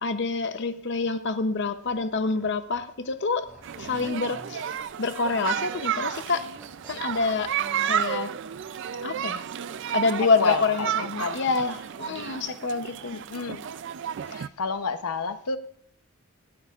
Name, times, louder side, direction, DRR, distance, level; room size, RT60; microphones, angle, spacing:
voice 1, 0.0-3.5 3.8-4.6 5.0-6.5 6.9-7.5 7.8-8.3 9.0-9.4 9.9-13.2, left 4 dB, 50° left, 0.7 m, -27 dB
sound 1, 0.7-1.0 1.6-4.5 4.8-4.9 5.2-5.4 5.7-8.2 8.6-8.7 11.9-12.8, left 1 dB, 5° right, 1.5 m, -52 dB
sound 2, 3.4-5.2 6.3-6.4 7.2-7.4, left 1 dB, 35° left, 2.8 m, -52 dB
sound 3, 3.6-14.5, right 9 dB, 55° right, 0.4 m, -32 dB
voice 2, 10.4-10.9 11.2-11.4 13.1-13.7 14.3-15.6, left 4 dB, 90° left, 0.7 m, -29 dB
17.5 x 12.5 x 2.4 m
head